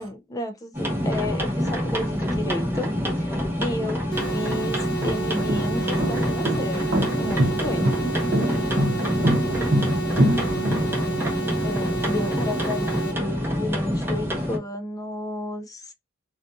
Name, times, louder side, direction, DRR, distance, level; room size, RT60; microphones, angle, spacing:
voice 1, 0.0-8.3 11.6-15.9, left 1 dB, 15° left, 0.4 m, -32 dB
sound 1, 0.7-14.6, equal, 10° right, 0.7 m, -26 dB
sound 2, 4.0-4.1 4.8-11.3, equal, 50° right, 0.8 m, -24 dB
sound 3, 4.1-13.1, right 5 dB, 55° left, 0.7 m, -31 dB
voice 2, 8.5-11.1 11.5-11.7, right 1 dB, 80° right, 0.5 m, -37 dB
2.5 x 2.3 x 2.5 m
head